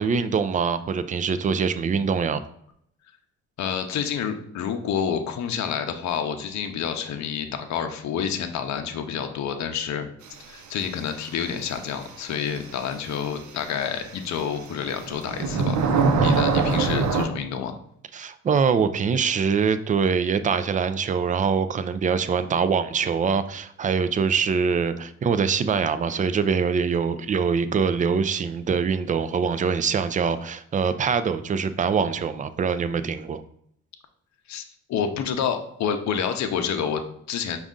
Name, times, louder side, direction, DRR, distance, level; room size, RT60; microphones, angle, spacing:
voice 1, 0.0-2.4 18.1-33.4, right 6 dB, 25° right, 12 dB, 0.3 m, -24 dB
voice 2, 3.6-10.1 10.5-15.8 16.2-17.7 34.5-34.6 34.9-37.6, left 7 dB, 65° left, 6 dB, 0.6 m, -28 dB
sound 1, 12.6-12.7 14.7-17.3, right 4 dB, 70° right, 0.7 m, -22 dB
5.2 x 2.4 x 3.7 m, 0.69 s
cardioid pair, 90°, 30 cm